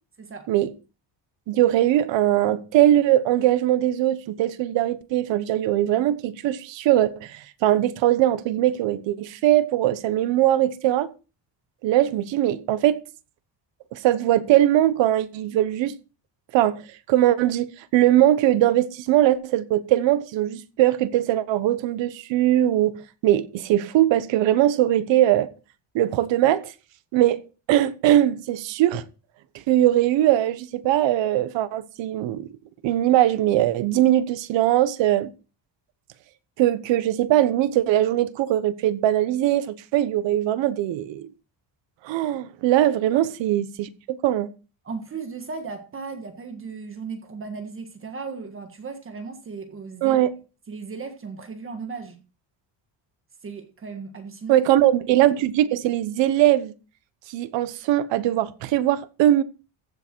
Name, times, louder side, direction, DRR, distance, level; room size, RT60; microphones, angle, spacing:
voice 1, 0.2-0.5 43.1-43.2 44.8-50.2 50.7-52.2 53.4-54.7, right 4 dB, 30° right, 1.5 m, -36 dB
voice 2, 1.5-11.1 11.8-13.0 13.9-15.9 16.5-25.5 25.9-26.7 27.1-29.0 29.7-32.5 32.8-35.3 36.6-41.3 42.0-44.5 50.0-50.3 54.5-56.7 57.3-59.4, right 13 dB, 75° right, 1.1 m, -21 dB
15.0 x 6.8 x 4.6 m
cardioid pair, 160°, 45 cm